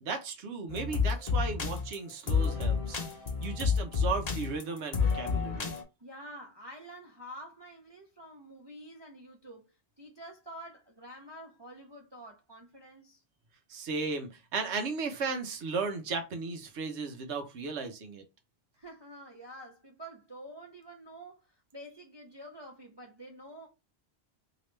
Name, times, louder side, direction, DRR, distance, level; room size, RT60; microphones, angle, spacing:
voice 1, 0.0-3.0 3.4-5.7 13.7-18.2, right 4 dB, 90° right, 1.0 m, -35 dB
sound 1, 0.7-5.8, left 5 dB, 40° left, 0.8 m, -29 dB
voice 2, 6.0-13.2 18.8-21.5 21.7-23.7, right 1 dB, 35° right, 0.4 m, -48 dB
3.1 x 2.9 x 3.2 m
omnidirectional pair, 1.1 m